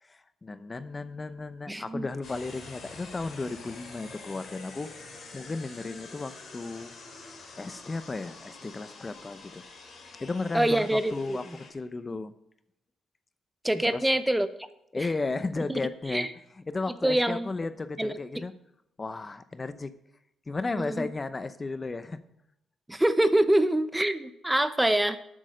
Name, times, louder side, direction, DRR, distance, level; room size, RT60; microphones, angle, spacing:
voice 1, 0.0-6.9 7.6-9.6 10.2-12.3 13.9-14.1 14.9-16.3 16.7-18.5 19.0-19.9 20.5-22.2, left 3 dB, 25° left, 12 dB, 0.7 m, -34 dB
voice 2, 1.7-2.1 10.5-11.4 13.6-14.5 15.0-15.1 15.7-15.8 16.1-16.3 17.0-17.5 18.0-18.1 20.8-21.1 22.9-25.2, right 1 dB, 10° right, 12 dB, 0.8 m, -25 dB
sound 1, 2.2-11.7, left 3 dB, 55° left, 3.7 m, -47 dB
12.0 x 8.7 x 5.1 m, 0.79 s
cardioid pair, 90°, 0 cm